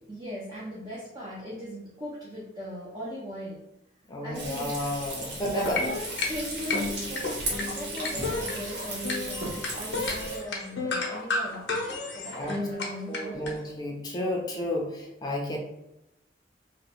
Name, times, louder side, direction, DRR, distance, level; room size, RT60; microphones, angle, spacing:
voice 1, 0.1-3.6 4.2-5.9 6.3-11.7 12.1-13.4, equal, 20° right, -7 dB, 0.7 m, -39 dB
voice 2, 4.1-5.9 12.3-12.6 13.1-15.6, left 1 dB, 25° left, -1 dB, 0.6 m, -31 dB
Frying (food), 4.3-10.4, right 2 dB, 85° right, 1.0 m, -36 dB
sound 1, 5.4-13.5, left 3 dB, 85° left, 0.8 m, -32 dB
2.8 x 2.3 x 4.1 m, 0.89 s
head